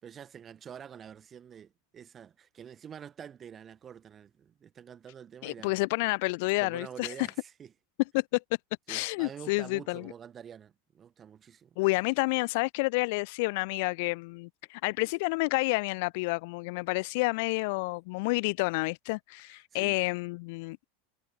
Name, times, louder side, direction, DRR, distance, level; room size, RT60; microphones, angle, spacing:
voice 1, 0.0-5.8 6.6-7.7 8.9-11.8 19.4-20.0, right 8 dB, 25° right, 4.3 m, -47 dB
voice 2, 5.4-7.3 8.1-8.4 8.9-10.1 11.8-20.9, left 27 dB, 65° left, 0.8 m, -29 dB
supercardioid pair, 120°, 0 cm